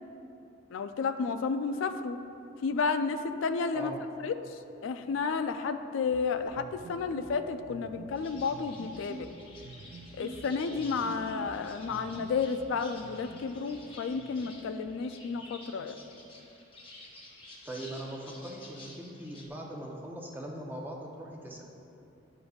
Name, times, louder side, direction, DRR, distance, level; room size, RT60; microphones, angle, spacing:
voice 1, 0.7-2.2 2.6-3.9 4.2-9.3 10.2-15.9, left 5 dB, 85° left, 9 dB, 0.3 m, -32 dB
sound 1, 6.0-15.6, right 3 dB, 50° right, 0.3 m, -48 dB
sound 2, 8.2-19.5, left 2 dB, 30° left, 0.9 m, -51 dB
voice 2, 17.6-21.6, right 1 dB, 10° right, -2 dB, 0.7 m, -40 dB
11.0 x 5.2 x 2.3 m, 2.8 s
head